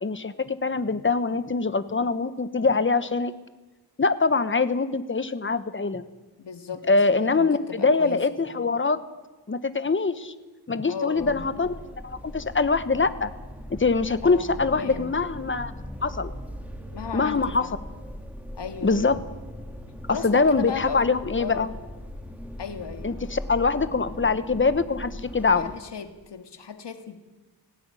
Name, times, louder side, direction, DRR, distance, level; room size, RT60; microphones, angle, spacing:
voice 1, 0.0-3.3 4.0-6.0 6.9-9.0 9.5-10.3 10.7-13.3 13.7-15.7 16.0-16.3 17.1-17.7 18.8-19.1 20.1-21.7 23.0-25.7, left 4 dB, 30° left, 13 dB, 1.1 m, -23 dB
voice 2, 6.4-8.6 10.9-11.5 14.2-14.5 14.8-15.2 16.9-17.7 18.5-19.2 20.1-21.7 22.6-23.1 25.5-27.2, left 7 dB, 85° left, 7 dB, 2.1 m, -36 dB
sound 1, 11.2-25.8, equal, 5° right, 2.0 m, -40 dB
18.0 x 16.5 x 9.8 m, 1.2 s
wide cardioid pair, 115°, 41 cm